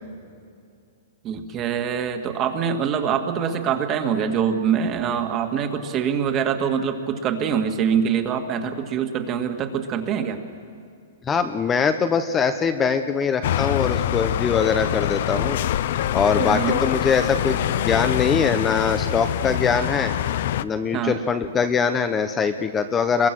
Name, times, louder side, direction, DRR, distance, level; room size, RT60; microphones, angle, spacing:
voice 1, 1.2-10.4 16.4-16.8 20.9-21.1, right 7 dB, 30° right, 5 dB, 2.1 m, -24 dB
voice 2, 11.3-15.6 16.1-20.1 20.6-23.3, left 6 dB, 20° left, 8 dB, 0.9 m, -22 dB
sound 1, 13.4-20.6, left 11 dB, 60° left, 0.6 m, -24 dB
27.0 x 23.0 x 6.2 m, 2.4 s
hypercardioid pair, 140°, 0 cm